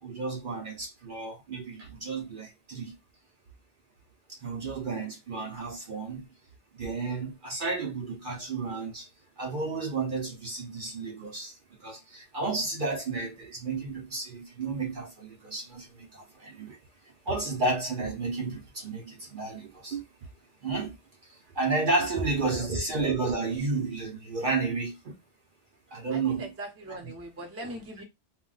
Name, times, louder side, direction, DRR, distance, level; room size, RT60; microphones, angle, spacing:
voice 1, 0.0-3.0 4.3-6.3 6.8-9.1 9.4-16.8 17.3-20.1 20.6-21.0 21.2-25.1 25.9-26.5 26.9-27.1, right 3 dB, 55° right, 0.7 m, -32 dB
voice 2, 22.4-22.8 26.1-28.0, right 1 dB, 15° right, 0.6 m, -39 dB
2.3 x 2.2 x 3.8 m
omnidirectional pair, 1.2 m